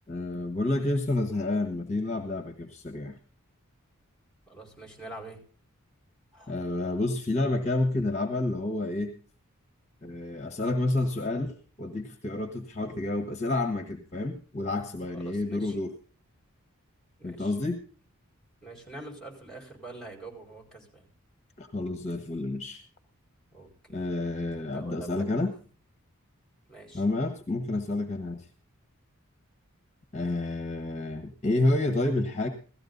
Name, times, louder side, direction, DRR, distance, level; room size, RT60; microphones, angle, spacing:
voice 1, 0.1-3.2 6.5-9.1 10.0-15.9 17.2-17.8 21.6-22.8 23.9-25.5 26.9-28.5 30.1-32.5, left 2 dB, 30° left, 7 dB, 1.3 m, -29 dB
voice 2, 4.5-5.4 6.3-6.6 15.1-15.8 17.2-17.6 18.6-21.0 23.5-24.0 24.6-25.2 26.7-27.0, right 2 dB, ahead, 1 dB, 4.8 m, -45 dB
17.0 x 14.0 x 4.0 m, 0.38 s
head